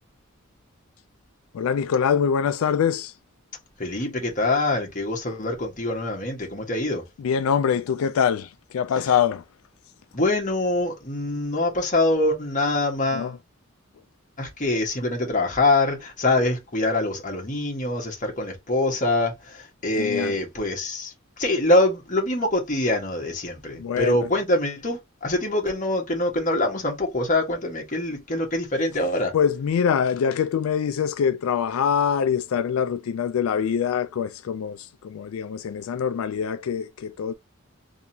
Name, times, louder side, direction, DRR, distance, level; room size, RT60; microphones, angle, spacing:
voice 1, 1.5-3.1 7.2-9.4 13.1-13.4 20.0-20.4 23.8-24.1 29.3-37.3, left 7 dB, 90° left, 0.3 m, -24 dB
voice 2, 3.8-7.1 10.1-13.3 14.4-29.3, left 2 dB, 40° left, 1.3 m, -24 dB
3.8 x 2.8 x 2.7 m
head